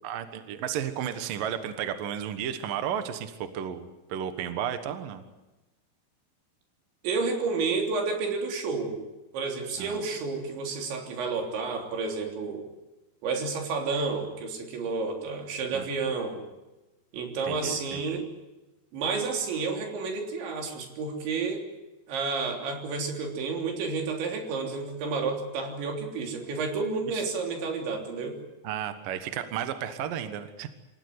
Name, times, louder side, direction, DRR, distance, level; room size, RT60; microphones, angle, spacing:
voice 1, 0.0-5.2 9.8-10.0 15.7-15.9 17.4-18.2 27.1-27.2 28.6-30.7, right 9 dB, 60° right, 9 dB, 2.6 m, -33 dB
voice 2, 7.0-9.0 9.3-12.6 13.2-16.4 17.1-18.3 18.9-21.6 22.1-28.4, right 4 dB, 80° right, 3 dB, 5.7 m, -30 dB
27.0 x 16.5 x 9.5 m, 1.0 s
omnidirectional pair, 5.1 m